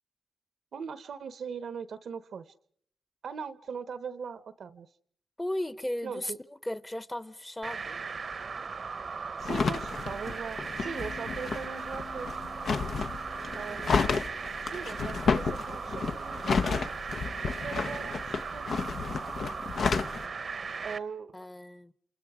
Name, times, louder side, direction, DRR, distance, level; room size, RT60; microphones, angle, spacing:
voice 1, 0.7-2.5 3.2-4.9 6.0-6.4 9.4-12.3 13.5-14.0 14.6-16.9 17.5-18.7 20.8-21.4, right 6 dB, 80° right, 1.1 m, -40 dB
voice 2, 5.4-6.3 6.6-8.0 21.3-21.9, left 1 dB, 15° left, 0.9 m, -35 dB
sound 1, 7.6-21.0, right 5 dB, 60° right, 0.9 m, -38 dB
sound 2, 9.4-20.3, left 5 dB, 75° left, 0.9 m, -31 dB
Mallet percussion, 10.8-15.6, left 6 dB, 45° left, 1.4 m, -51 dB
28.0 x 27.5 x 5.0 m
cardioid pair, 80°, 0 cm